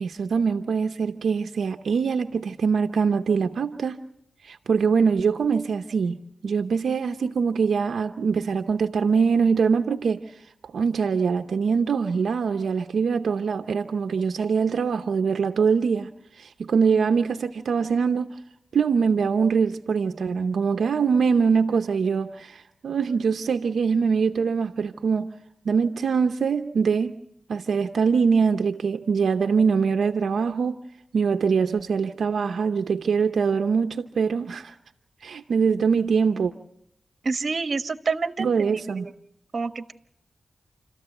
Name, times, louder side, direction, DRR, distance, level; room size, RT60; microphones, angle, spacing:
voice 1, 0.0-4.0 4.4-6.2 6.4-10.2 10.6-16.1 16.4-18.3 18.7-25.3 25.6-27.2 27.5-30.8 31.1-34.7 35.2-36.5 38.4-39.1, right 5 dB, 85° right, 6 dB, 0.7 m, -23 dB
voice 2, 37.2-38.5 38.8-39.1 39.5-39.9, right 4 dB, 60° right, 9 dB, 1.2 m, -28 dB
29.0 x 14.0 x 7.9 m, 0.77 s
cardioid pair, 60°, 0 cm